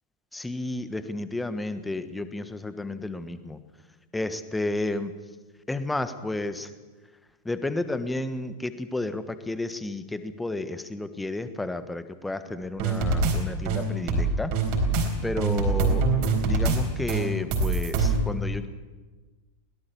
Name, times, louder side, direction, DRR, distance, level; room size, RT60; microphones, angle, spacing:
voice 1, 0.3-3.6 4.1-5.1 5.7-6.7 7.4-14.5 15.2-16.0 16.4-18.7, left 2 dB, 5° left, 11 dB, 1.3 m, -31 dB
sound 1, 12.8-13.3 13.7-15.1 15.4-16.8 17.1-18.2, right 3 dB, 45° right, 4.0 m, -24 dB
21.5 x 17.5 x 7.0 m, 1.3 s
figure-of-eight pair, 90°, 0 cm